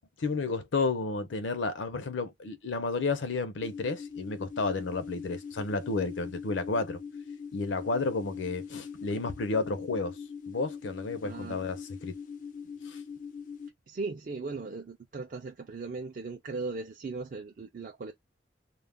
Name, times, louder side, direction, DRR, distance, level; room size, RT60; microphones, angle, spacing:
voice 1, 0.2-7.0 7.5-10.2 10.5-12.2 12.8-13.0, left 3 dB, 80° left, 0.6 m, -31 dB
sound 1, 3.6-13.7, left 6 dB, 40° left, 0.3 m, -42 dB
voice 2, 11.2-11.6 13.9-18.1, right 3 dB, 45° right, 0.4 m, -38 dB
2.3 x 2.2 x 3.3 m
head